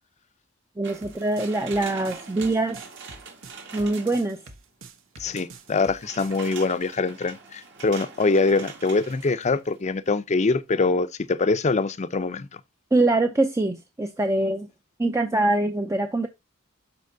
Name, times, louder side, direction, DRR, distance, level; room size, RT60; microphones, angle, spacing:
voice 1, 0.8-2.8 3.7-4.4 12.9-14.7 15.0-16.3, right 2 dB, 15° right, 0.4 m, -23 dB
sound 1, 0.8-4.5 5.4-9.8 10.1-10.2, right 5 dB, 60° right, 1.7 m, -43 dB
sound 2, 1.0-6.4, right 3 dB, 75° right, 1.2 m, -46 dB
voice 2, 5.2-12.6, left 3 dB, 35° left, 0.5 m, -24 dB
11.5 x 4.3 x 2.7 m
head